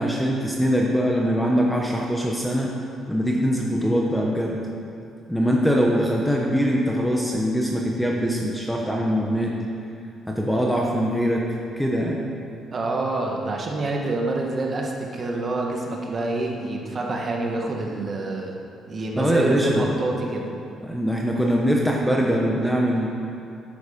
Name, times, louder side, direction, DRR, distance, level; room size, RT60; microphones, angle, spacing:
voice 1, 0.0-2.7 3.1-4.6 5.3-9.6 10.3-11.5 11.8-12.3 19.2-19.9 20.8-23.1, equal, ahead, -2 dB, 0.9 m, -22 dB
voice 2, 12.7-18.6 18.9-20.4, right 2 dB, 30° right, 0 dB, 1.5 m, -27 dB
13.0 x 9.6 x 5.2 m, 2.5 s
cardioid pair, 160°, 0 cm